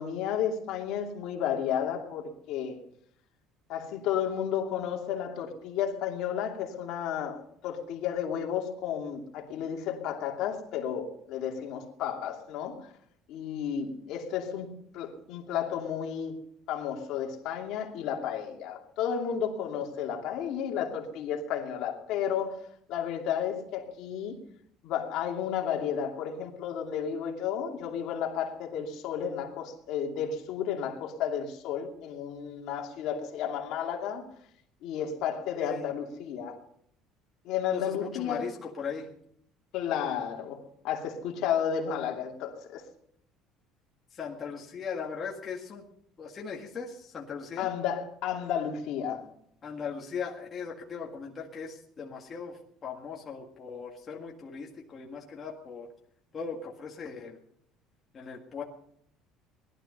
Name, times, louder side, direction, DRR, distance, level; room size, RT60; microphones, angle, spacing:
voice 1, 0.0-2.8 3.7-12.9 13.3-16.4 16.7-22.6 22.9-24.4 24.8-34.2 34.8-36.6 37.4-38.4 39.7-42.8 47.6-49.3, left 8 dB, 55° left, 2.6 m, -32 dB
voice 2, 37.7-39.1 44.1-45.8 46.2-47.7 49.6-55.9 56.3-57.4 58.1-58.6, left 6 dB, 25° left, 1.8 m, -39 dB
19.5 x 12.0 x 5.5 m
cardioid pair, 175°, 0 cm